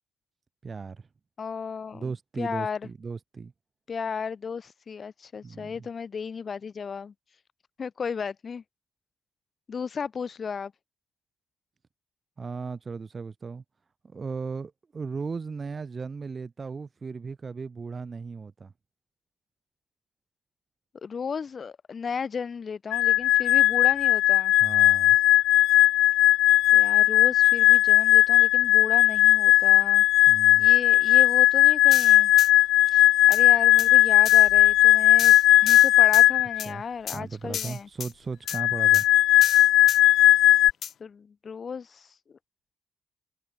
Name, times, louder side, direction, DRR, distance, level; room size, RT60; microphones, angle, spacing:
voice 1, 0.6-1.1 1.9-3.5 5.4-5.9 12.4-13.6 14.0-18.7 24.6-25.2 30.3-30.7 36.6-36.8 37.1-39.1, right 4 dB, 30° right, 1.5 m, -36 dB
voice 2, 1.4-2.9 3.9-7.1 7.8-8.6 9.7-10.7 21.0-24.5 26.7-30.0 30.6-32.3 32.9-35.3 35.6-37.9 41.0-42.4, left 6 dB, 35° left, 1.2 m, -35 dB
sound 1, 22.9-36.6 38.5-40.7, left 15 dB, 90° left, 0.4 m, -18 dB
sound 2, 31.9-32.5 33.3-33.4 33.8-33.9 34.3-34.5 35.2-36.3 36.6-36.7 37.1-37.2 37.5-38.1 38.5-38.6 38.9-39.1 39.4-40.0 40.8-40.9, left 9 dB, 55° left, 0.9 m, -34 dB
cardioid pair, 130°, 0 cm